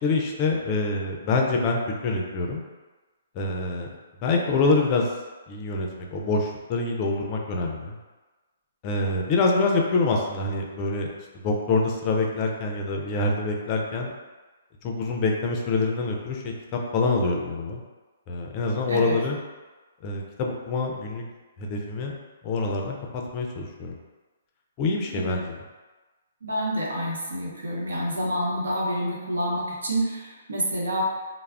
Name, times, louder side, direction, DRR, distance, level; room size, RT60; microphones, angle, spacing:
voice 1, 0.0-2.6 3.4-3.9 4.2-5.1 5.5-8.0 8.8-11.1 11.4-14.1 14.8-17.8 18.3-19.4 20.0-21.2 21.6-22.1 22.4-24.0 24.8-25.6, left 3 dB, 35° left, 0 dB, 0.4 m, -26 dB
voice 2, 26.4-31.0, right 1 dB, 85° right, -3 dB, 0.8 m, -28 dB
2.3 x 2.0 x 3.3 m, 1.2 s
hypercardioid pair, 140°, 0 cm